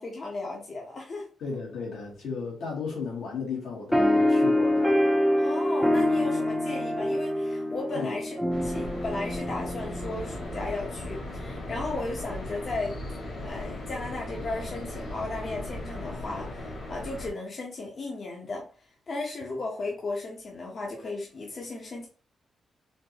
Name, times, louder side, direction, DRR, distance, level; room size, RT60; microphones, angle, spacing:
voice 1, 0.0-1.3 5.4-13.0 13.4-18.6 19.1-22.1, left 2 dB, 45° left, 1.1 m, -35 dB
voice 2, 1.4-4.9 7.9-8.1, left 5 dB, 85° left, 2.0 m, -34 dB
sound 1, 3.9-10.8, left 1 dB, ahead, 0.7 m, -25 dB
sound 2, 8.5-17.3, left 1 dB, 60° left, 1.8 m, -37 dB
4.3 x 2.7 x 3.0 m
cardioid pair, 105°, 0 cm